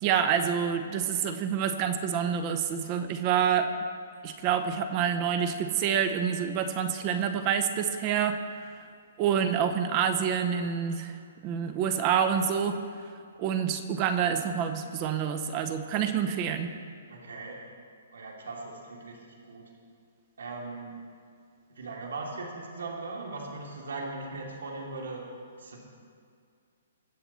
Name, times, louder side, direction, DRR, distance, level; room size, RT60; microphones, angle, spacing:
voice 1, 0.0-3.7 4.2-8.7 9.2-11.2 11.4-12.8 13.4-16.7, right 8 dB, 30° right, 9 dB, 0.8 m, -27 dB
voice 2, 17.1-17.6 18.1-19.6 20.4-20.9 21.7-25.2 25.6-25.8, right 3 dB, 85° right, -1 dB, 2.6 m, -39 dB
22.0 x 7.6 x 4.2 m, 2.2 s
hypercardioid pair, 160°, 0 cm